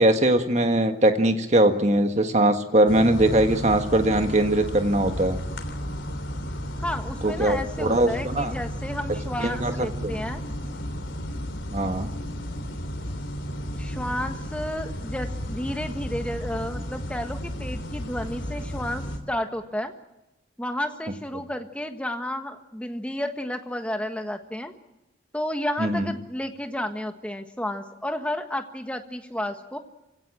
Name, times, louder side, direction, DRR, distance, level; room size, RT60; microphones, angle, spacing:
voice 1, 0.0-5.4 7.2-8.5 9.4-9.7 10.0-10.1 11.7-12.1 25.8-26.1, right 1 dB, 35° right, 6 dB, 1.6 m, -21 dB
sound 1, 2.9-19.2, equal, 80° left, 3.2 m, -33 dB
voice 2, 6.8-10.4 13.7-19.9 20.6-24.7 25.3-29.8, left 1 dB, 5° left, 6 dB, 1.5 m, -32 dB
27.0 x 17.0 x 7.7 m, 0.97 s
head